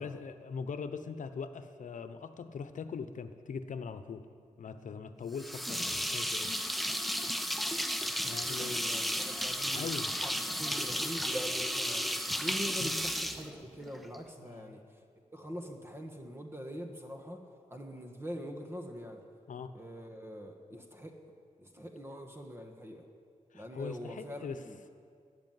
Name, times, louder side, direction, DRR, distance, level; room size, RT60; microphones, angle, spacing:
voice 1, 0.0-4.3 4.6-6.5 7.2-7.4 7.9-8.8 9.7-10.1 12.8-13.0 14.4-14.8 19.5-19.7 23.5-24.6, left 5 dB, 75° left, 11 dB, 0.9 m, -41 dB
sound 1, 5.4-14.2, equal, ahead, 0.8 m, -33 dB
voice 2, 8.2-9.9 10.2-10.3 10.6-15.0 15.3-17.4 17.7-19.2 19.7-21.2 21.6-23.0 23.5-24.8, equal, 20° right, 3 dB, 1.5 m, -43 dB
13.5 x 12.0 x 9.2 m, 2.2 s
wide cardioid pair, 110°, 13 cm